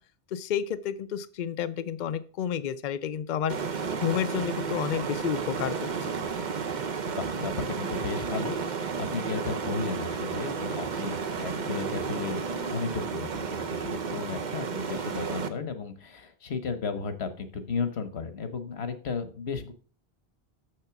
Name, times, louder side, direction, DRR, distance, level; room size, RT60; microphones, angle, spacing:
voice 1, 0.3-3.5 3.9-5.8, left 9 dB, 55° left, 12 dB, 0.6 m, -30 dB
sound 1, 3.5-15.5, right 5 dB, 50° right, 0.9 m, -32 dB
voice 2, 7.1-19.7, left 5 dB, 90° left, 11 dB, 1.3 m, -34 dB
6.7 x 6.6 x 5.8 m, 0.41 s
omnidirectional pair, 1.0 m